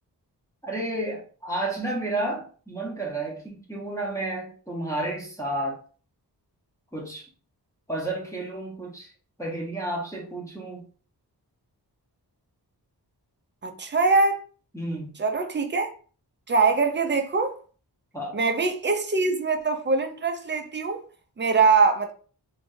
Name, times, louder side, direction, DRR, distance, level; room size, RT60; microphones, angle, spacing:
voice 1, 0.6-5.8 6.9-7.3 7.9-9.1 9.4-10.8 14.7-15.2 18.1-18.4, right 1 dB, 10° left, 0.9 m, -31 dB
voice 2, 13.6-14.4 15.2-15.9 16.5-17.6 18.3-21.0 21.4-22.1, right 4 dB, 30° right, 0.5 m, -23 dB
2.7 x 2.3 x 3.8 m
wide cardioid pair, 100°, 40 cm